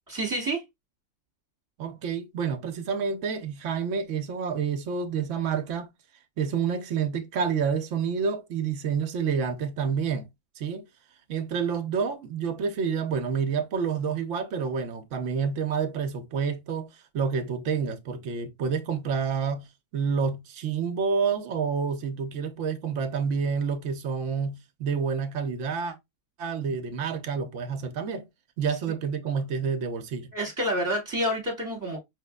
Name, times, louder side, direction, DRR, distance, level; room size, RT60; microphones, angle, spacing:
voice 1, 0.1-0.6 30.3-32.0, right 1 dB, 15° right, 2.0 m, -28 dB
voice 2, 1.8-5.9 6.4-10.3 10.6-10.8 11.3-16.9 17.1-19.7 19.9-26.0 26.4-28.3 28.6-30.3, right 6 dB, 65° right, 1.0 m, -28 dB
4.9 x 3.2 x 2.2 m
omnidirectional pair, 1.4 m